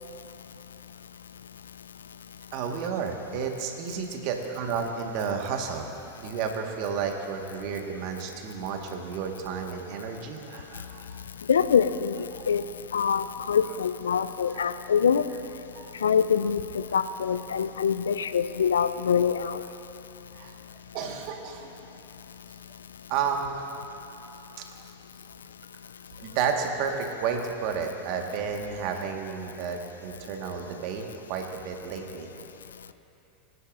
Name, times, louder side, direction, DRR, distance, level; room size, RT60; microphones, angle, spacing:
voice 1, 2.5-5.9 6.2-11.2 12.4-12.5 14.1-14.2 14.5-14.7 15.7-15.9 20.3-20.5 20.9-21.7 23.1-23.6 24.6-24.9 26.2-32.5, right 6 dB, 50° right, 3 dB, 1.5 m, -32 dB
voice 2, 11.5-12.6 12.9-15.3 16.0-19.6, left 7 dB, 80° left, 12 dB, 0.4 m, -24 dB
21.5 x 11.0 x 2.6 m, 3.0 s
hypercardioid pair, 90°, 0 cm